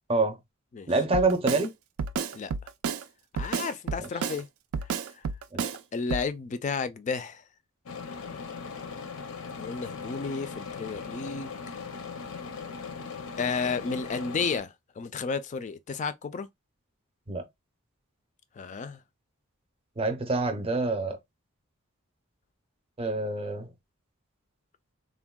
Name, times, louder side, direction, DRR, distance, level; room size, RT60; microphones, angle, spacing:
voice 1, 0.9-1.7 5.5-5.7 17.3-17.4 20.0-21.2 23.0-23.7, right 3 dB, 25° right, 0.5 m, -26 dB
Drum kit, 1.1-1.7 2.0-3.0 3.4-4.4 4.7-5.8 6.1-6.3, right 6 dB, 80° right, 0.4 m, -31 dB
voice 2, 3.3-4.5 5.9-7.4 9.6-11.5 13.4-16.5 18.6-19.0, left 5 dB, 35° left, 0.3 m, -32 dB
sound 1, 7.9-14.6, left 5 dB, 80° left, 0.6 m, -39 dB
3.5 x 2.2 x 2.2 m
head